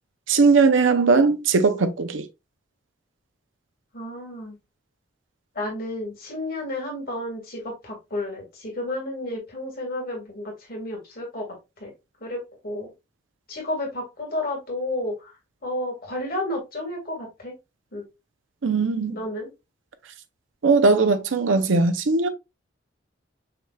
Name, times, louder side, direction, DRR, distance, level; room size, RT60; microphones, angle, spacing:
voice 1, 0.3-2.2 18.6-19.2 20.6-22.3, right 4 dB, 80° right, 0.6 m, -19 dB
voice 2, 3.9-4.6 5.6-11.5 11.8-11.9 12.2-12.9 13.5-15.3 15.6-17.5 17.9-18.0 19.1-19.5, left 1 dB, 50° left, 2.1 m, -31 dB
5.8 x 3.3 x 2.3 m
head